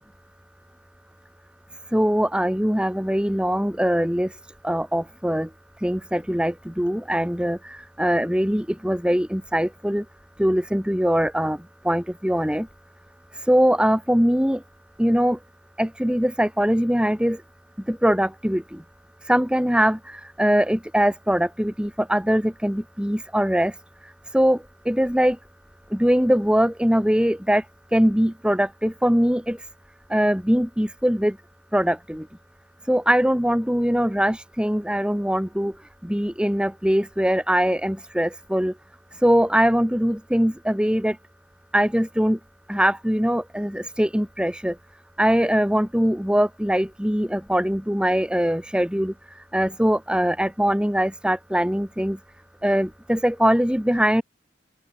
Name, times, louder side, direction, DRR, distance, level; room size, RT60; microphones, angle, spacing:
voice 1, 1.9-4.3 4.6-5.5 5.8-7.6 8.0-10.0 10.4-12.7 13.5-14.6 15.0-15.4 15.8-17.4 17.9-18.8 19.3-20.0 20.4-23.7 24.3-25.4 25.9-27.6 27.9-29.6 30.1-31.4 31.7-32.3 32.9-35.7 36.0-38.7 39.2-41.2 41.7-42.4 42.7-44.8 45.2-49.1 49.5-52.2 52.6-54.2, equal, 5° right, 2.3 m, -22 dB
open air
head